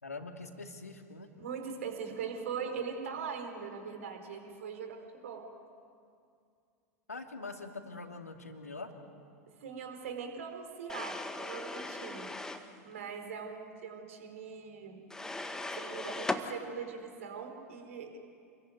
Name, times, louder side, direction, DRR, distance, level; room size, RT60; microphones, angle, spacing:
voice 1, 0.0-1.3 7.1-8.9, left 3 dB, 80° left, 4 dB, 2.6 m, -43 dB
voice 2, 1.4-5.5 9.6-12.5 12.8-15.0 15.7-18.2, right 6 dB, 65° right, 5 dB, 4.4 m, -41 dB
sound 1, 10.9-12.7 15.1-16.5, left 2 dB, 5° left, 1.7 m, -38 dB
28.5 x 22.0 x 9.6 m, 2.3 s
figure-of-eight pair, 85°, 8 cm